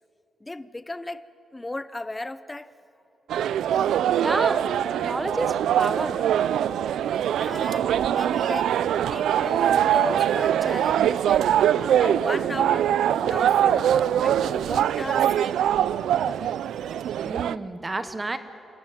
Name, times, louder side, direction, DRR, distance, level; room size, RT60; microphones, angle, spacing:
voice 1, 0.4-1.2 1.5-2.7 7.4-8.8 9.1-11.5 12.0-13.9 14.2-15.3, left 2 dB, 15° left, 15 dB, 0.6 m, -35 dB
sound 1, 3.3-17.6, right 10 dB, 85° right, 0.4 m, -23 dB
voice 2, 4.2-4.6 5.0-6.2 17.2-18.4, right 2 dB, 20° right, 10 dB, 1.0 m, -29 dB
27.0 x 13.5 x 9.3 m, 2.5 s
cardioid pair, 130°, 0 cm